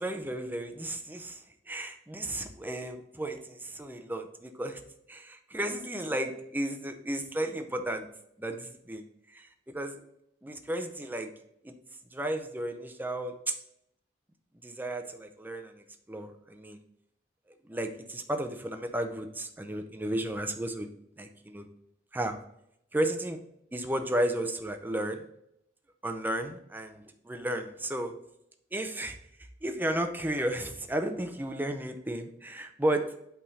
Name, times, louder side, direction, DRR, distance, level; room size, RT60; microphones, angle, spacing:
voice 1, 0.0-4.8 5.1-8.1 8.4-9.5 9.7-10.0 10.4-11.3 11.6-11.7 12.1-13.5 14.6-16.8 17.7-20.9 21.2-21.7 22.1-22.4 22.9-23.4 23.7-25.2 26.0-28.1 28.7-29.2 29.6-33.1, right 1 dB, 10° right, 6 dB, 0.6 m, -33 dB
8.6 x 3.5 x 4.1 m, 0.76 s
head